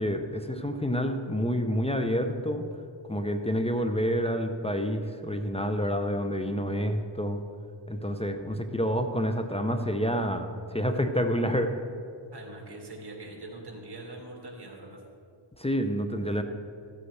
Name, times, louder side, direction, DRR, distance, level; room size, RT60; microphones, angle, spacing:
voice 1, 0.0-2.6 3.1-7.4 7.9-11.7 15.6-16.4, equal, 10° left, 7 dB, 0.7 m, -28 dB
voice 2, 12.3-15.0, right 2 dB, 50° right, 0 dB, 2.1 m, -43 dB
14.0 x 8.1 x 3.3 m, 2.4 s
cardioid pair, 60°, 50 cm